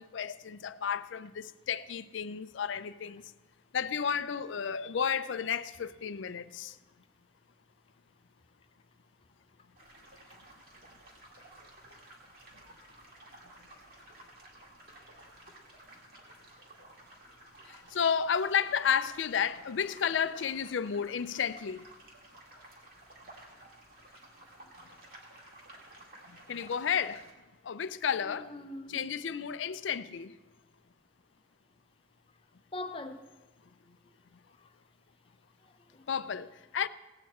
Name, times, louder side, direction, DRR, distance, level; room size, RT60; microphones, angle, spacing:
voice 1, 0.0-3.2 3.7-6.7 17.7-21.8 26.3-27.3 27.6-28.5 28.9-30.3 36.1-36.9, left 7 dB, 75° left, 0.4 m, -32 dB
sound 1, 9.8-27.3, right 1 dB, 50° right, 2.1 m, -54 dB
voice 2, 28.2-29.0 32.7-33.3 34.6-34.7 35.6-36.1, left 2 dB, 30° left, 0.7 m, -44 dB
17.5 x 8.5 x 4.3 m
head